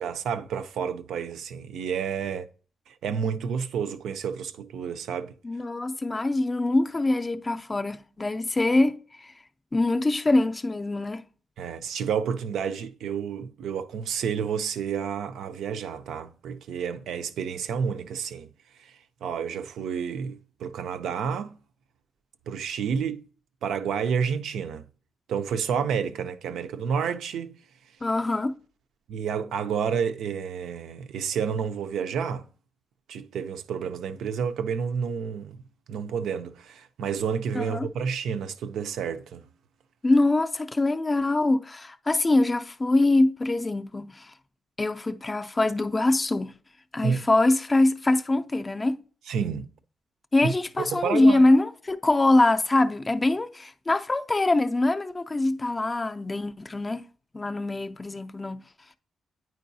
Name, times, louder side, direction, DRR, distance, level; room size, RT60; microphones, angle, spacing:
voice 1, 0.0-2.5 2.9-5.3 11.6-18.5 18.8-18.9 19.2-21.6 22.5-23.3 23.6-24.8 25.3-27.6 29.1-32.5 33.1-35.6 35.9-39.4 47.0-47.2 49.3-49.7 50.4-50.5 50.9-51.5, right 7 dB, 90° right, 0.4 m, -30 dB
voice 2, 5.4-9.3 9.7-11.2 28.0-28.6 37.5-37.9 40.0-44.3 44.8-46.5 46.9-49.0 50.3-57.0 57.3-58.6, left 2 dB, 20° left, 0.3 m, -23 dB
9.2 x 4.6 x 2.7 m
wide cardioid pair, 165°, 0 cm